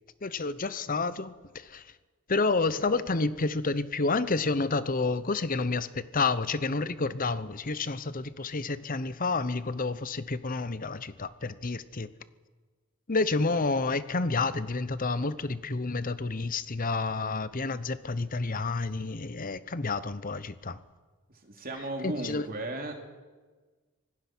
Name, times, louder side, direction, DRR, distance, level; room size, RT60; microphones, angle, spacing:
voice 1, 0.2-1.9 2.3-12.1 13.1-20.8 22.0-22.5, left 3 dB, 40° left, 0.8 m, -29 dB
voice 2, 21.4-22.9, right 2 dB, 40° right, 3.1 m, -35 dB
25.5 x 18.0 x 6.2 m
head